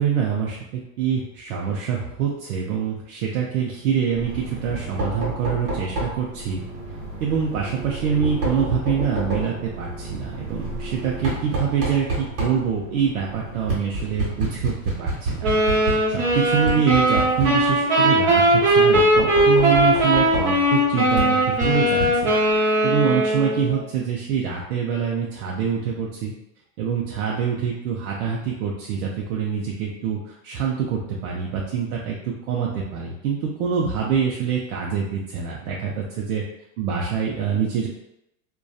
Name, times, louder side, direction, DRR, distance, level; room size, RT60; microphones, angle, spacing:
voice 1, 0.0-6.6 7.2-22.3 22.8-26.3 26.8-36.4 36.8-37.9, right 7 dB, 85° right, -2 dB, 0.6 m, -25 dB
Knock, 4.1-22.6, right 2 dB, 45° right, 1.2 m, -30 dB
sound 1, 15.4-23.8, right 1 dB, 25° right, 0.7 m, -19 dB
2.5 x 2.3 x 2.3 m, 0.85 s
supercardioid pair, 135°, 43 cm